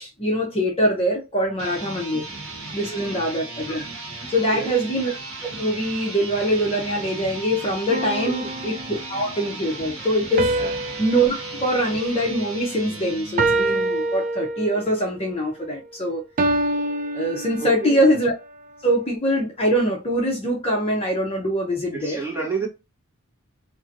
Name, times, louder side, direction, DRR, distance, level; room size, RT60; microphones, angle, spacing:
voice 1, 0.0-2.2 2.7-3.8 4.3-5.2 5.5-10.5 11.0-16.2 17.1-18.3 18.8-22.2, equal, 30° left, 0.7 m, -23 dB
sound 1, 1.5-14.3, right 3 dB, 75° right, 1.1 m, -36 dB
sound 2, 7.9-9.3 10.4-12.9 13.4-15.0 16.4-18.1, right 2 dB, 40° right, 0.3 m, -26 dB
voice 2, 17.6-18.0 21.9-22.7, right 5 dB, 10° right, 1.2 m, -30 dB
2.7 x 2.5 x 2.5 m
head